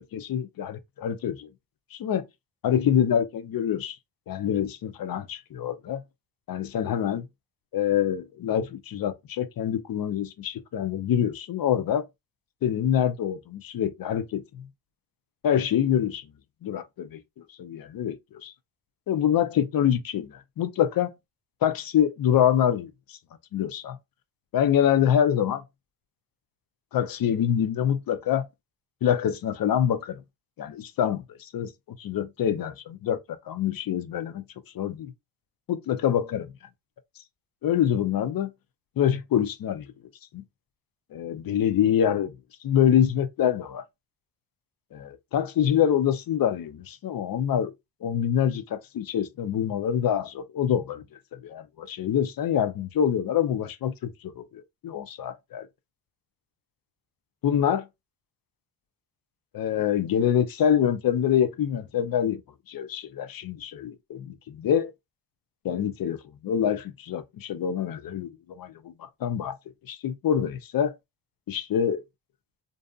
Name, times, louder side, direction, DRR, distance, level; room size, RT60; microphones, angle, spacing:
voice 1, 0.0-1.5 1.9-2.2 2.6-4.0 4.3-6.0 6.5-7.2 7.7-12.1 12.6-14.7 15.4-16.2 16.6-18.5 19.1-21.1 21.6-23.2 23.5-24.0 24.5-25.6 26.9-28.5 29.0-30.2 30.6-33.2 33.5-34.4 34.7-35.1 35.7-36.5 37.6-38.5 39.0-39.9 40.3-40.4 41.1-42.3 42.6-43.8 44.9-47.7 48.0-51.0 51.3-55.7 57.4-57.9 59.5-62.4 62.7-64.9 65.6-69.5 69.9-70.9 71.5-72.0, left 9 dB, 50° left, 0.5 m, -26 dB
2.6 x 2.5 x 2.3 m
cardioid pair, 65°, 47 cm